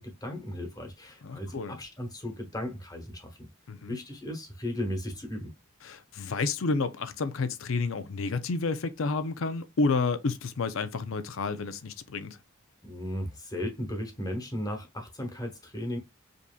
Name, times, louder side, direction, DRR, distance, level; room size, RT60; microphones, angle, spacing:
voice 1, 0.0-3.5 3.8-5.5 12.8-16.0, left 1 dB, 20° left, 1.1 m, -36 dB
voice 2, 1.2-1.7 3.7-4.0 5.8-12.4, left 4 dB, 65° left, 0.5 m, -30 dB
5.2 x 2.8 x 2.2 m
head